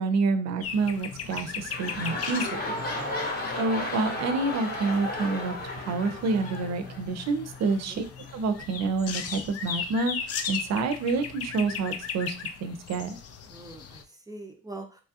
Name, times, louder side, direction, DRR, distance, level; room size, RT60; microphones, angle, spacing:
voice 1, 0.0-2.6 3.5-8.0 8.3-13.2, right 3 dB, 60° right, 10 dB, 0.5 m, -28 dB
sound 1, 0.6-14.0, left 6 dB, 55° left, 0.4 m, -38 dB
sound 2, 1.2-7.6 8.3-8.4, left 2 dB, 30° left, 0.8 m, -34 dB
voice 2, 2.9-3.3 7.7-8.0 13.5-15.0, right 1 dB, 10° right, 4 dB, 0.5 m, -42 dB
3.0 x 2.3 x 2.7 m, 0.35 s
cardioid pair, 90°, 30 cm